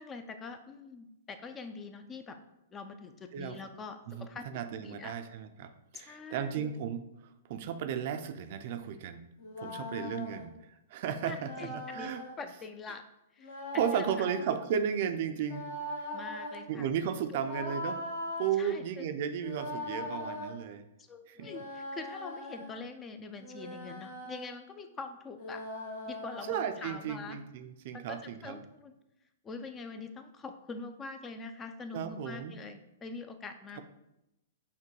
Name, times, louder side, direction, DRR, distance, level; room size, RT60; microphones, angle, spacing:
voice 1, 0.0-2.4 2.7-4.5 4.7-5.2 5.9-6.7 10.0-10.1 11.2-12.1 12.4-13.0 13.3-14.3 16.1-16.9 17.3-17.4 18.6-19.1 21.0-25.6 26.1-27.4 27.9-28.9 29.4-33.8, left 4 dB, 20° left, 8 dB, 0.3 m, -44 dB
voice 2, 4.1-7.0 7.5-9.2 9.6-10.5 10.9-12.2 13.8-15.7 16.7-18.0 18.4-20.8 21.3-21.5 26.5-28.6 31.9-32.5, right 8 dB, 55° right, 9 dB, 0.4 m, -34 dB
sound 1, 9.4-10.5 11.4-12.3 13.4-14.6 15.4-16.6 17.4-18.5 19.4-20.5 21.4-22.8 23.4-24.5 25.4-26.8, left 1 dB, 60° left, 1.1 m, -40 dB
5.8 x 2.2 x 3.1 m, 0.88 s
hypercardioid pair, 120°, 0 cm